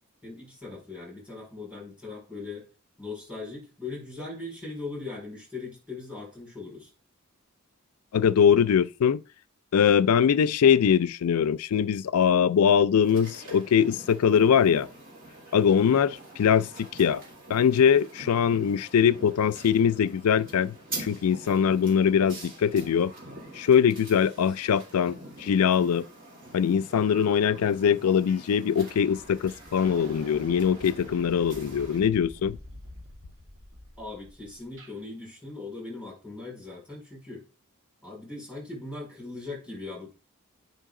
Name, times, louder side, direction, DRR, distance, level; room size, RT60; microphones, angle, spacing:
voice 1, 0.2-2.7 3.0-6.9 34.0-37.4 38.0-40.1, left 3 dB, 5° right, 4.7 m, -39 dB
voice 2, 8.1-9.2 9.7-14.9 15.5-17.2 17.5-23.1 23.6-26.0 26.5-32.6, left 7 dB, 85° left, 0.4 m, -22 dB
sound 1, 13.0-32.0, right 2 dB, 40° right, 2.9 m, -45 dB
sound 2, 28.3-28.5 28.8-35.0, left 1 dB, 65° right, 1.9 m, -47 dB
9.1 x 5.3 x 3.7 m
head